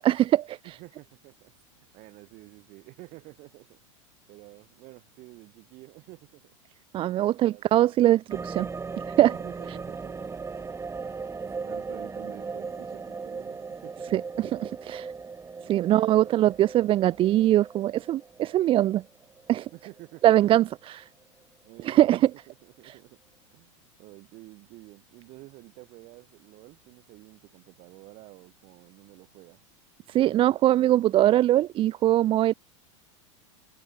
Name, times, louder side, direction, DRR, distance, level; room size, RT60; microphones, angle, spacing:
voice 1, 0.0-0.6 6.9-8.7 9.2-9.3 14.1-15.1 15.7-19.0 19.5-19.7 20.2-21.0 21.8-22.3 30.1-32.5, right 13 dB, 35° right, 0.5 m, -22 dB
voice 2, 0.6-3.8 4.3-6.6 7.1-7.7 9.3-10.6 11.6-14.3 15.1-15.2 15.6-16.6 19.7-20.6 21.6-22.0 22.5-23.2 23.5-23.7 24.0-29.6, right 21 dB, 50° right, 4.3 m, -50 dB
sound 1, 8.3-20.5 20.8-20.9, right 4 dB, 15° right, 2.3 m, -38 dB
hypercardioid pair, 105°, 17 cm